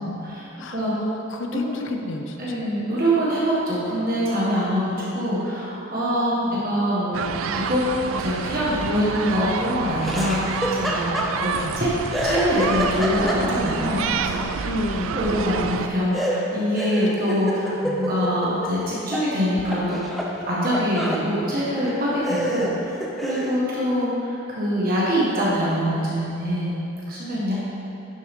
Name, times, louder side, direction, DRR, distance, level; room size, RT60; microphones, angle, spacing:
voice 1, 0.0-0.4 0.7-0.9 1.9-2.0 2.4-7.8 8.1-10.4 10.7-11.9 12.2-14.6 15.1-20.0 20.5-26.7 27.1-27.5, equal, 40° right, -8 dB, 1.5 m, -24 dB
voice 2, 0.5-2.4 6.3-6.6 11.6-11.8 14.6-15.2 17.8-18.1, left 2 dB, 60° left, 4 dB, 0.7 m, -31 dB
sound 1, 7.1-15.9, right 6 dB, 70° right, 0.3 m, -29 dB
Laughter, 10.0-11.8 12.1-13.8 16.1-19.3 19.6-21.3 21.8-21.9 22.2-23.6, equal, ahead, 0.6 m, -28 dB
10.5 x 6.5 x 3.6 m, 2.9 s
head